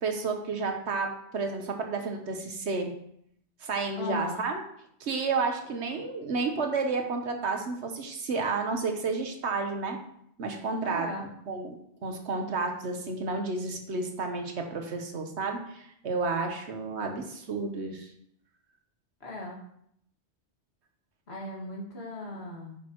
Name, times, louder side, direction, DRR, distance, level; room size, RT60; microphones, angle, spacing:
voice 1, 0.0-2.9 3.6-4.6 5.0-10.0 10.4-11.8 12.0-18.1, right 4 dB, 75° right, 4 dB, 1.2 m, -31 dB
voice 2, 4.0-4.4 10.8-11.3 19.2-19.6 21.3-22.8, left 2 dB, 65° left, -2 dB, 2.1 m, -37 dB
8.9 x 6.3 x 3.0 m, 0.70 s
omnidirectional pair, 1.2 m